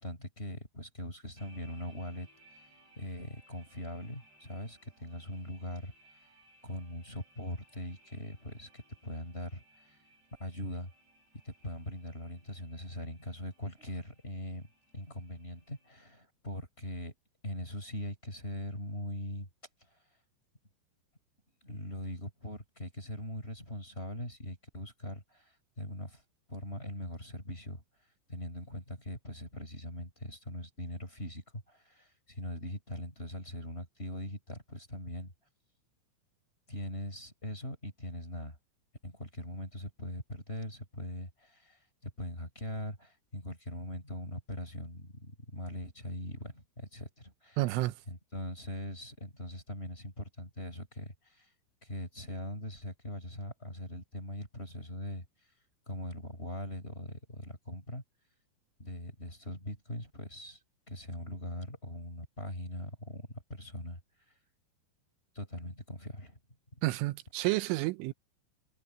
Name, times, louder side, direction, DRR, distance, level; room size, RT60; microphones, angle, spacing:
voice 1, 0.0-2.3 3.0-5.9 6.6-9.6 9.9-10.0 10.4-10.9 11.4-14.7 14.9-17.1 17.4-19.5 21.6-26.2 26.5-27.8 28.3-35.3 36.7-38.6 39.0-47.6 48.1-51.5 51.8-55.3 55.9-58.0 58.8-60.6 60.9-64.0 65.3-66.4 66.7-66.8, left 1 dB, 10° left, 5.7 m, -41 dB
sound 1, 1.4-15.9, right 1 dB, 60° right, 10.5 m, -64 dB
voice 2, 47.6-48.0 66.8-68.1, right 20 dB, 85° right, 3.1 m, -30 dB
omnidirectional pair, 5.6 m